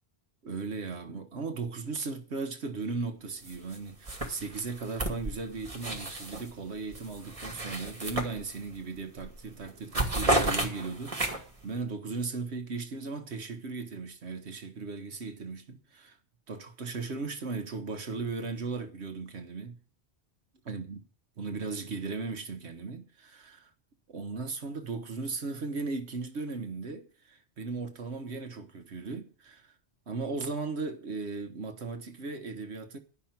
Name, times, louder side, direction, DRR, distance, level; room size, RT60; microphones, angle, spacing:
voice 1, 0.4-16.2 16.5-19.7 20.7-21.0 21.4-23.7 24.1-29.7 30.1-33.0, right 4 dB, 80° right, 1.5 m, -37 dB
sound 1, 3.4-3.8 4.0-6.5 6.9-8.8 9.2-9.4 9.7-11.6, right 1 dB, 30° right, 2.2 m, -32 dB
11.0 x 5.9 x 9.1 m
omnidirectional pair, 1.1 m